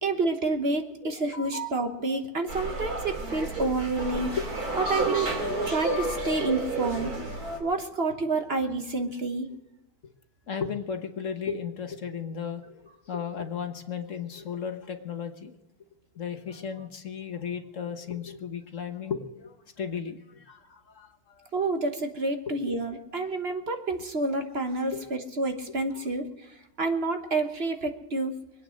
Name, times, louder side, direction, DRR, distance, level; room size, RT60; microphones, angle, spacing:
voice 1, 0.0-4.4 4.8-5.4 5.7-7.1 7.6-9.5 21.5-26.3 26.8-28.4, right 3 dB, 45° right, 6 dB, 1.4 m, -29 dB
voice 2, 1.0-2.0 4.4-4.5 10.0-10.1 10.5-15.6 16.1-21.5 22.5-22.7 24.9-25.0 25.9-26.1, left 6 dB, 55° left, 6 dB, 1.5 m, -35 dB
sound 1, 2.5-7.6, right 2 dB, 85° right, 3.5 m, -31 dB
24.0 x 9.0 x 6.4 m, 0.98 s
omnidirectional pair, 1.6 m